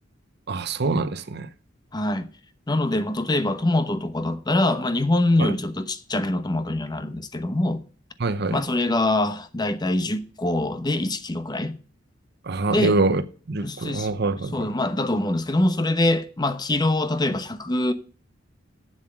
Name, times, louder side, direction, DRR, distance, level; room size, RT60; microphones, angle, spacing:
voice 1, 0.5-1.5 5.4-5.5 8.2-8.6 12.4-13.2 13.5-14.7, right 3 dB, 60° right, 0.8 m, -24 dB
voice 2, 1.9-2.3 2.7-7.8 8.5-11.8 12.7-13.0 13.6-14.1 14.5-17.9, left 1 dB, 20° left, 0.9 m, -24 dB
7.9 x 7.4 x 7.6 m
head